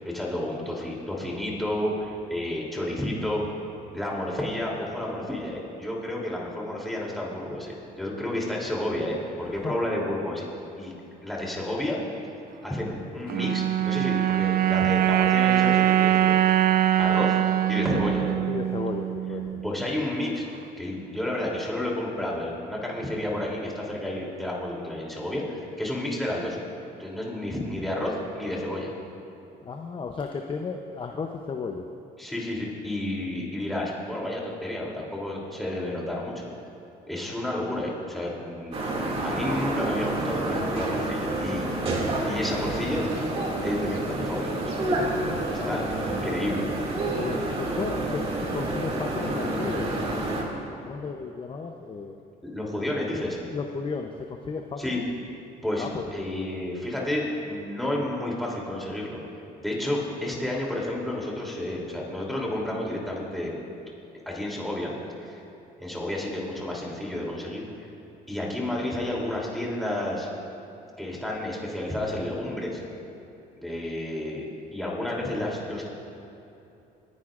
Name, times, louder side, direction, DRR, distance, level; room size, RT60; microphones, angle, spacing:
voice 1, 0.1-3.4 3.9-10.4 10.8-10.9 11.2-12.0 12.6-16.6 17.0-17.4 17.7-18.3 19.6-20.4 20.8-26.6 27.0-28.9 32.2-36.5 37.0-41.6 42.2-43.0 43.6-44.7 45.6-46.7 52.4-53.4 54.8-55.0 55.6-59.2 59.6-63.6 64.2-64.9 65.2-65.4 65.8-67.9 68.3-70.3 71.0-72.8 73.6-75.9, left 1 dB, ahead, -4 dB, 3.0 m, -31 dB
sound 1, 13.3-19.7, right 12 dB, 65° right, 0.5 m, -23 dB
voice 2, 18.5-19.6 29.6-31.9 45.6-46.1 47.2-48.2 48.5-52.2 53.5-55.0 55.8-56.1, left 4 dB, 30° left, 3 dB, 0.7 m, -34 dB
sound 2, 38.7-50.4, right 2 dB, 35° right, 2.3 m, -29 dB
28.0 x 10.5 x 2.5 m, 2.9 s
cardioid pair, 110°, 17 cm